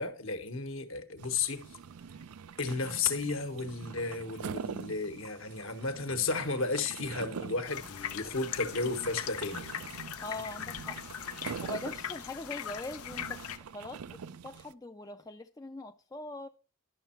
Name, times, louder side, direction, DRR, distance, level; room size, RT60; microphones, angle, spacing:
voice 1, 0.0-1.6 2.6-9.7, left 4 dB, 65° left, 1.3 m, -33 dB
sound 1, 1.2-14.7, right 6 dB, 85° right, 0.5 m, -45 dB
sound 2, 7.7-13.6, left 9 dB, 85° left, 0.7 m, -40 dB
voice 2, 10.2-11.0 11.6-13.4 13.7-16.5, left 2 dB, 15° left, 0.4 m, -42 dB
11.0 x 6.5 x 4.4 m
head